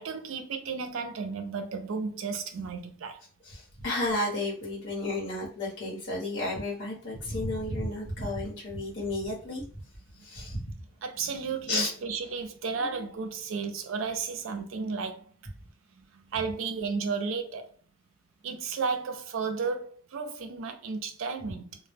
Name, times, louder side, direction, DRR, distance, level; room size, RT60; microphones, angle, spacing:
voice 1, 0.0-3.2 10.2-10.6 11.0-15.5 16.0-17.7 18.4-21.8, right 5 dB, 75° right, 0.4 m, -33 dB
voice 2, 3.4-9.6 10.2-10.6 11.7-11.9 12.8-13.0, left 2 dB, 60° left, 0.9 m, -32 dB
2.1 x 2.0 x 3.2 m
head